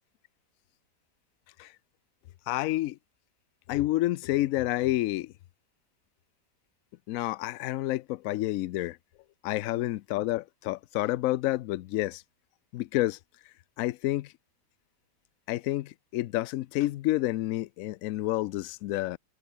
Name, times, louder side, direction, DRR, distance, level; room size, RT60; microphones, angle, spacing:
voice 1, 2.5-3.0 3.7-5.3 7.1-9.0 9.4-12.2 12.7-13.2 13.8-14.3 15.5-19.2, left 16 dB, 70° left, 0.8 m, -29 dB
omnidirectional pair, 1.8 m